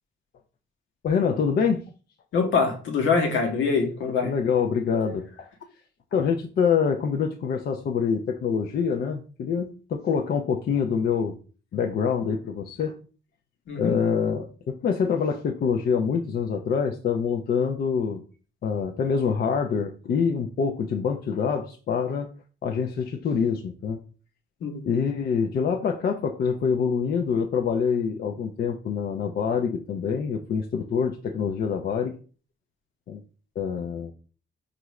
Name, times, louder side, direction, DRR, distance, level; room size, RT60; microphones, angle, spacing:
voice 1, 1.0-1.8 4.2-5.2 6.1-11.4 11.7-12.9 13.7-18.2 18.6-22.3 22.6-24.0 24.8-32.1 33.1-33.2 33.6-34.1, left 6 dB, 50° left, 0.5 m, -25 dB
voice 2, 2.3-4.3 13.7-14.0 24.6-24.8, left 4 dB, 70° left, 1.0 m, -24 dB
4.6 x 2.5 x 3.1 m
cardioid pair, 90°, 20 cm